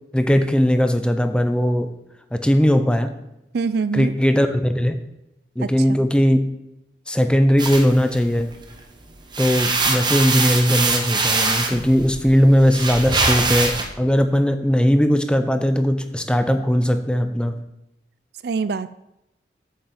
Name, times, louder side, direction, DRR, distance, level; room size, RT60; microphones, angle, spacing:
voice 1, 0.1-1.9 2.3-3.1 3.9-5.0 5.6-6.4 7.1-8.5 9.4-17.6, equal, 5° left, 8 dB, 0.7 m, -19 dB
voice 2, 3.5-4.1 5.6-6.0 18.4-18.9, right 5 dB, 60° right, 15 dB, 0.4 m, -25 dB
sound 1, 7.6-8.8 9.2-13.8, right 3 dB, 25° right, 1.2 m, -23 dB
8.7 x 6.5 x 7.2 m, 0.89 s
head